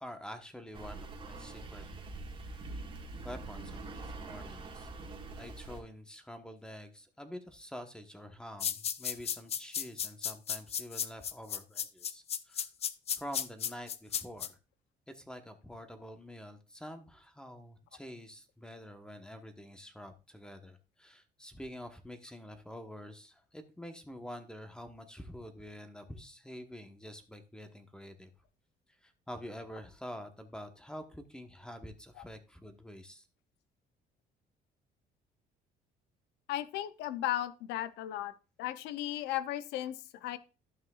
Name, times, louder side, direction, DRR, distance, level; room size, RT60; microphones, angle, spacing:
voice 1, 0.0-1.8 3.2-4.9 5.4-12.7 13.1-14.6 15.1-28.3 29.0-33.3, equal, 5° left, 7 dB, 1.0 m, -47 dB
sound 1, 0.7-5.8, right 3 dB, 30° right, 1.7 m, -44 dB
sound 2, 8.6-14.5, left 8 dB, 40° left, 0.5 m, -34 dB
voice 2, 36.5-38.3 38.6-40.4, left 13 dB, 90° left, 14 dB, 0.6 m, -35 dB
12.5 x 5.7 x 2.4 m, 0.32 s
cardioid pair, 110°, 17 cm